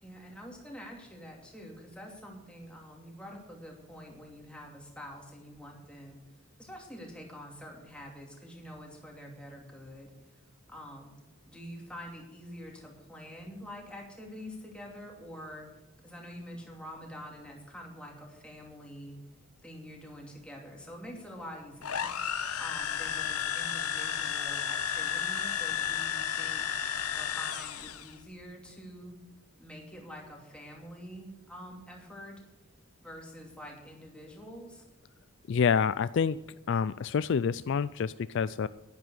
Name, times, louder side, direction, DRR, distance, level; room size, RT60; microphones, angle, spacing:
voice 1, 0.0-6.2 6.6-10.4 10.7-11.1 11.5-15.7 16.0-19.2 19.6-22.2 22.6-26.7 27.1-29.2 29.6-32.4 33.0-34.8, equal, 5° left, -1 dB, 2.6 m, -46 dB
sound 1, 21.8-28.1, left 8 dB, 90° left, 1.0 m, -32 dB
voice 2, 35.5-36.4 36.7-38.7, left 6 dB, 55° left, 15 dB, 0.3 m, -27 dB
11.0 x 10.5 x 6.4 m, 1.0 s
head